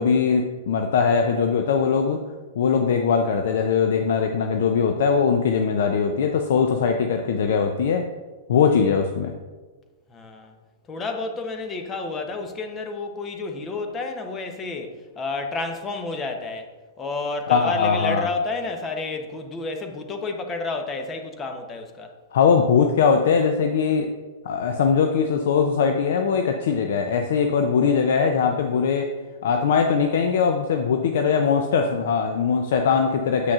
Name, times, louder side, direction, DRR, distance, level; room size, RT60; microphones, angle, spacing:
voice 1, 0.0-2.2 2.6-8.0 8.5-9.3 17.5-18.3 22.3-24.1 24.4-29.1 29.4-33.5, left 6 dB, 70° left, 5 dB, 0.5 m, -21 dB
voice 2, 10.1-10.5 10.9-16.7 17.0-22.1, left 3 dB, 20° left, 5 dB, 0.8 m, -30 dB
7.5 x 6.1 x 2.4 m, 1.3 s
hypercardioid pair, 125°, 0 cm